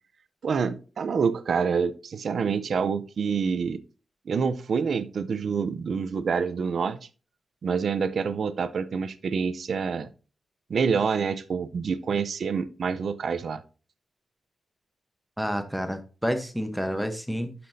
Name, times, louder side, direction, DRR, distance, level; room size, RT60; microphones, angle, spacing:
voice 1, 0.4-3.8 4.3-7.0 7.6-10.1 10.7-13.6, right 6 dB, 55° right, 14 dB, 0.6 m, -27 dB
voice 2, 15.4-17.5, equal, ahead, 8 dB, 1.0 m, -29 dB
11.5 x 5.9 x 2.7 m, 0.36 s
wide cardioid pair, 170°, 0 cm